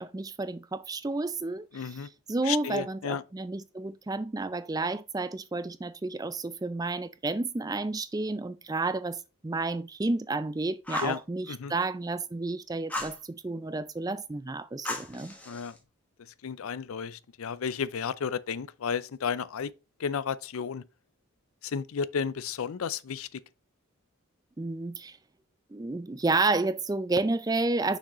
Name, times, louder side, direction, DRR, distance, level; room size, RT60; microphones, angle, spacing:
voice 1, 0.0-15.3 24.6-25.2 25.7-28.0, right 3 dB, 15° right, 0.3 m, -31 dB
voice 2, 1.7-2.1 2.4-3.2 11.0-11.2 11.5-11.7 15.5-15.7 16.4-19.7 20.0-20.8 21.6-23.4, left 6 dB, 75° left, 0.5 m, -33 dB
Fire, 10.8-11.2 12.9-13.2 14.8-15.8, left 2 dB, 5° left, 1.3 m, -35 dB
6.2 x 6.2 x 3.0 m
head